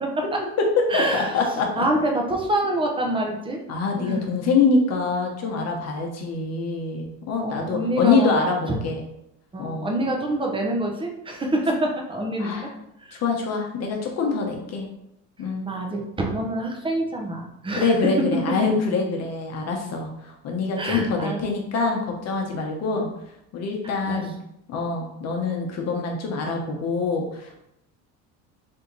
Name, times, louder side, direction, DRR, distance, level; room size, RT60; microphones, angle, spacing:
voice 1, 0.0-0.4 0.9-1.3 1.7-3.6 3.9-4.2 7.4-8.3 8.7-8.8 9.5-12.7 13.0-13.2 15.6-17.9 20.8-21.4 24.0-24.3, right 1 dB, 15° right, 1 dB, 0.8 m, -26 dB
voice 2, 0.6-1.8 3.7-9.0 9.6-9.9 12.4-12.7 13.2-14.9 15.4-16.0 17.8-23.1 23.5-24.3 24.7-27.6, left 4 dB, 50° left, 1 dB, 0.9 m, -25 dB
3.6 x 2.8 x 3.9 m, 0.80 s
supercardioid pair, 110°, 34 cm